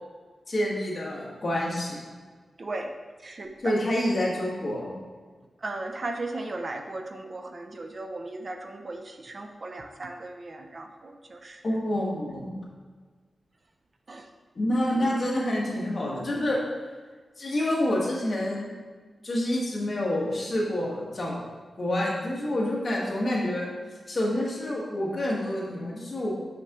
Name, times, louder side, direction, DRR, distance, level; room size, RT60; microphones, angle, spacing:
voice 1, 0.5-2.0 3.6-4.9 11.6-12.5 14.5-16.6 17.4-18.7 19.2-21.4 21.8-23.7 24.1-26.3, left 1 dB, 40° left, -4 dB, 1.4 m, -27 dB
voice 2, 2.6-2.9 3.2-3.5 5.6-11.6 14.1-14.3, right 2 dB, 40° right, 4 dB, 0.4 m, -36 dB
5.9 x 5.7 x 3.0 m, 1.5 s
wide cardioid pair, 125°, 0 cm